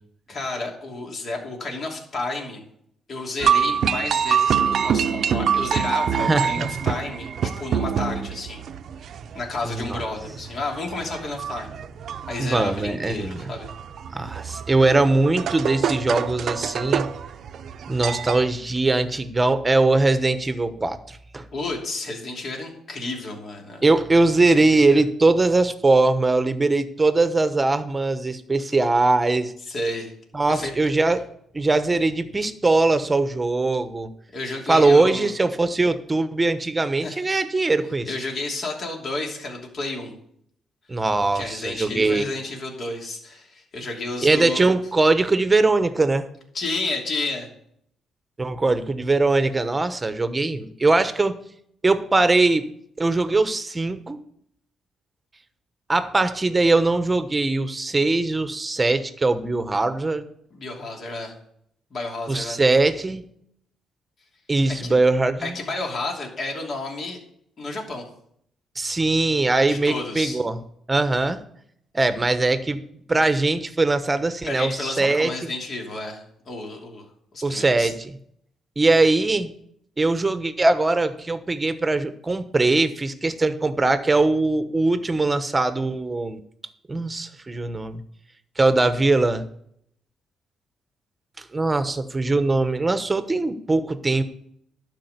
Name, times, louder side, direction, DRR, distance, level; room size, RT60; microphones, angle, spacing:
voice 1, 0.3-2.6 3.1-8.6 9.3-11.8 12.3-13.7 21.5-23.8 24.5-25.0 29.7-30.1 30.5-30.9 34.3-35.3 37.0-37.2 38.1-40.1 41.3-44.7 46.5-47.5 60.5-61.3 61.9-62.6 64.8-64.9 65.4-67.2 67.6-68.0 69.7-70.4 74.5-77.0 77.3-77.9, left 2 dB, 50° left, 0 dB, 2.9 m, -31 dB
sound 1, 3.4-18.5, right 8 dB, 65° right, 0.6 m, -26 dB
voice 2, 6.1-6.7 9.6-10.0 12.4-13.5 14.1-17.1 17.9-21.5 23.8-29.5 30.3-31.2 31.5-34.1 34.7-38.1 40.9-42.3 44.2-46.3 48.4-51.4 51.8-52.7 53.0-54.2 55.9-60.2 62.3-63.2 64.5-65.5 68.7-70.6 70.9-71.4 71.9-72.8 73.1-75.5 77.4-78.2 78.8-79.5 80.0-86.4 86.9-88.0 88.6-89.4 91.4-94.2, right 3 dB, 20° right, 11 dB, 1.0 m, -21 dB
11.5 x 4.9 x 8.1 m, 0.69 s
cardioid pair, 90°, 0 cm